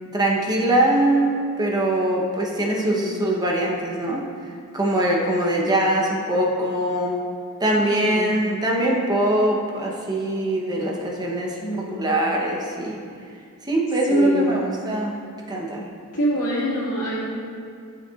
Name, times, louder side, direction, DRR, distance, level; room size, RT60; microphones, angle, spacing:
voice 1, 0.1-4.2 4.7-7.2 7.6-13.0 13.6-15.2 15.5-15.8, right 1 dB, 20° right, -2 dB, 0.8 m, -22 dB
voice 2, 2.7-3.2 7.7-8.3 11.6-12.1 14.1-14.6 16.1-17.2, equal, 75° left, -6 dB, 2.0 m, -26 dB
11.5 x 6.7 x 2.4 m, 2.2 s
head